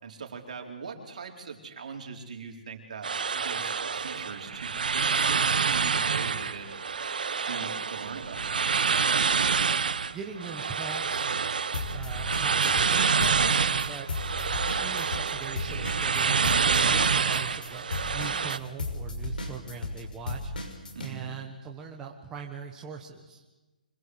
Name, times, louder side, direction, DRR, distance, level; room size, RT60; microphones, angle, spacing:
voice 1, 0.0-6.7 7.4-8.7 20.9-21.4, right 5 dB, 60° right, 3 dB, 4.3 m, -41 dB
sound 1, 3.0-18.6, right 5 dB, 75° right, 1.1 m, -27 dB
voice 2, 10.1-11.5 11.9-14.1 14.8-23.4, right 6 dB, 10° right, 0 dB, 1.3 m, -41 dB
sound 2, 11.7-13.0 13.2-21.1, left 2 dB, 80° left, 5.9 m, -34 dB
25.0 x 21.0 x 8.1 m, 1.1 s
hypercardioid pair, 170°, 5 cm